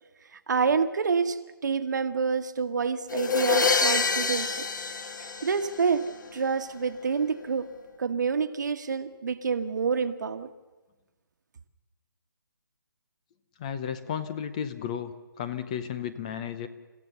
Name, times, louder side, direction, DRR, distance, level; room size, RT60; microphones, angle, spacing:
voice 1, 0.5-4.5 5.4-6.0 6.3-7.7 8.0-10.5, right 5 dB, 50° right, 10 dB, 1.4 m, -27 dB
sound 1, 3.1-6.1, left 5 dB, 55° left, 2.0 m, -26 dB
voice 2, 13.6-16.7, left 8 dB, 20° left, 12 dB, 0.6 m, -33 dB
30.0 x 15.5 x 6.9 m, 1.2 s
hypercardioid pair, 170°, 12 cm